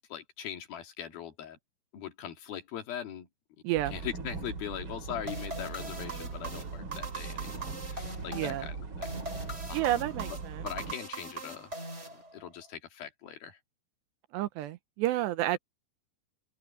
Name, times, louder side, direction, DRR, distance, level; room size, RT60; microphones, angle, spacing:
voice 1, 0.1-1.6 1.9-3.3 3.9-9.9 10.6-11.7 12.1-13.6, left 9 dB, 60° left, 3.4 m, -41 dB
sound 1, 3.7-10.9, right 4 dB, 40° right, 2.2 m, -40 dB
sound 2, 5.3-12.7, right 2 dB, 15° right, 4.5 m, -41 dB
voice 2, 8.3-8.6 9.7-10.6 14.3-15.6, right 14 dB, 80° right, 2.7 m, -30 dB
open air
omnidirectional pair, 5.3 m